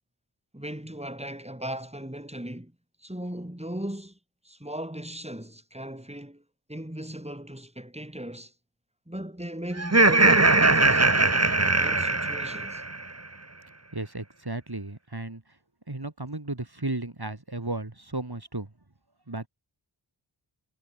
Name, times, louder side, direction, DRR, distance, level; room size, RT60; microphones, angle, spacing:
voice 1, 0.5-2.7 3.0-4.2 4.4-6.4 6.7-8.5 9.1-11.4 11.7-12.8, right 1 dB, 15° right, 7.9 m, -38 dB
Laughter, 9.8-13.0, right 2 dB, 30° right, 1.7 m, -20 dB
voice 2, 13.9-15.6 15.9-18.7 19.3-19.5, right 2 dB, 50° right, 5.6 m, -34 dB
wide cardioid pair, 40°, 47 cm